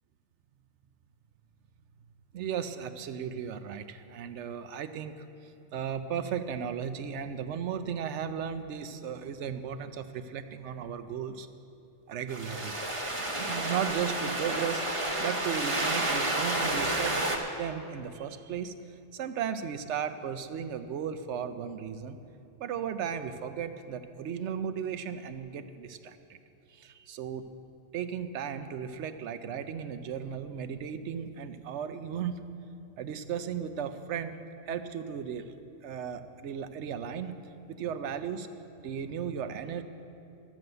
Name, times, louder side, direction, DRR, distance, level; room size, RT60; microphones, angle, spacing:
voice 1, 2.3-11.5 12.1-12.7 13.3-17.3 17.6-18.7 19.1-22.2 22.6-26.4 26.7-27.5 27.9-32.5 33.0-34.4 34.7-35.5 35.8-37.4 37.7-38.5 38.8-39.8, right 8 dB, 70° right, 10 dB, 0.9 m, -35 dB
sound 1, 12.3-17.4, right 1 dB, 25° right, 1.0 m, -30 dB
12.5 x 7.7 x 7.8 m, 2.7 s
omnidirectional pair, 1.3 m